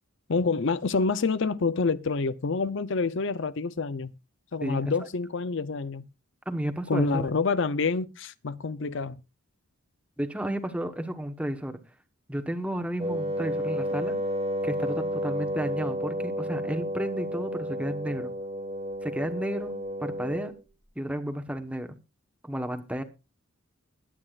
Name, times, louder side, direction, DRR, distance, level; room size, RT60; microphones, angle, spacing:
voice 1, 0.3-4.1 4.5-6.0 6.9-9.2, left 4 dB, 55° left, 0.6 m, -27 dB
voice 2, 4.6-4.9 6.5-7.3 10.2-11.8 12.3-14.2 14.6-18.3 19.0-19.8 20.0-20.5 20.9-22.0 22.4-23.0, right 1 dB, 5° right, 1.1 m, -32 dB
Wind instrument woodwind instrument, 13.0-20.6, equal, 25° right, 1.6 m, -31 dB
21.0 x 9.8 x 2.5 m
head